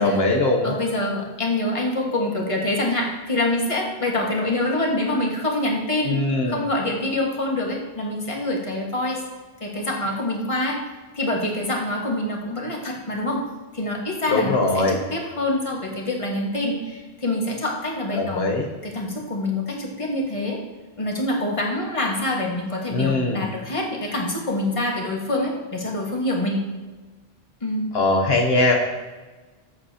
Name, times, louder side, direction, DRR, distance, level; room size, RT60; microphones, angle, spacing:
voice 1, 0.0-0.8 6.0-6.6 14.3-15.0 18.1-18.7 22.9-23.4 27.9-28.7, left 2 dB, 75° left, 1 dB, 1.2 m, -21 dB
voice 2, 0.6-9.2 9.6-10.8 11.1-13.4 13.7-18.5 18.8-20.6 21.0-26.7 27.6-28.0, left 1 dB, 30° left, -1 dB, 1.6 m, -26 dB
16.5 x 8.1 x 2.8 m, 1.3 s
omnidirectional pair, 1.1 m